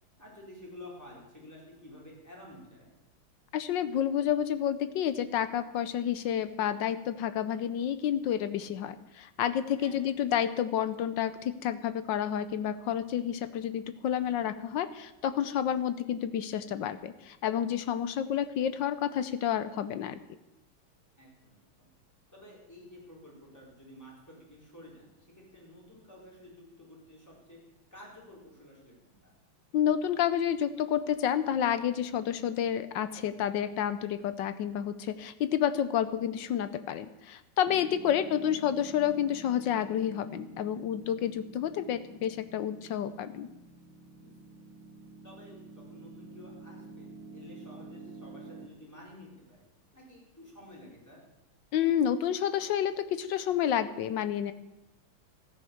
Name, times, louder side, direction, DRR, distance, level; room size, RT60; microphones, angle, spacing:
voice 1, 0.2-2.9 9.8-10.0 21.2-21.9 22.3-27.6 27.9-29.3 38.2-38.6 44.2-44.5 45.2-49.7 49.9-51.2, left 1 dB, 5° left, -3 dB, 4.3 m, -51 dB
voice 2, 3.5-20.2 29.7-43.5 51.7-54.5, left 9 dB, 70° left, 13 dB, 1.2 m, -30 dB
Piano, 37.7-48.7, right 3 dB, 70° right, 1.9 m, -49 dB
14.0 x 9.5 x 7.1 m, 0.97 s
omnidirectional pair, 2.4 m